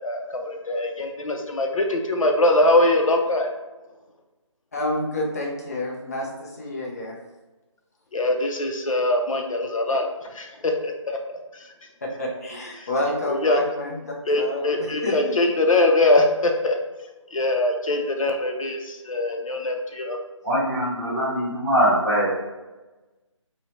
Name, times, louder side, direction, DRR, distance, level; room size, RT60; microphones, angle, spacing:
voice 1, 0.0-3.5 8.1-10.1 10.3-11.6 12.8-12.9 13.2-13.6 14.3-16.8 17.3-20.2, left 2 dB, 85° left, 3 dB, 0.5 m, -22 dB
voice 2, 4.7-7.1 12.0-14.7 15.0-15.3, left 1 dB, 30° left, -2 dB, 0.5 m, -29 dB
voice 3, 20.4-22.3, equal, 15° right, -10 dB, 0.6 m, -22 dB
2.7 x 2.1 x 2.8 m, 1.1 s
figure-of-eight pair, 160°, 17 cm